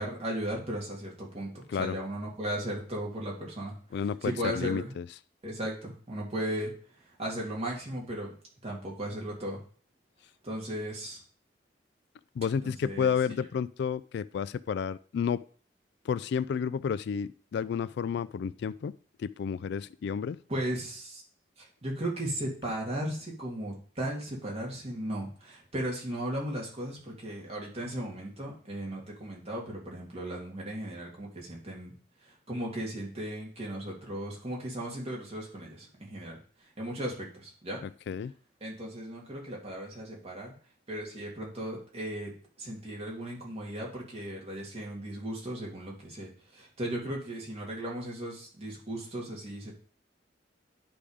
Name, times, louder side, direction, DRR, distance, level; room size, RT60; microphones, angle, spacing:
voice 1, 0.0-4.9 5.4-6.7 7.2-8.3 8.6-9.6 10.4-11.2 12.5-13.5 20.5-21.2 21.6-31.9 32.2-36.4 36.8-37.8 38.6-40.5 40.9-42.3 42.6-49.7, right 1 dB, 35° right, -3 dB, 2.6 m, -36 dB
voice 2, 3.9-5.1 12.4-15.4 16.1-18.9 19.2-20.4 38.1-38.3, left 7 dB, 65° left, 18 dB, 0.3 m, -31 dB
10.5 x 3.6 x 5.0 m, 0.43 s
head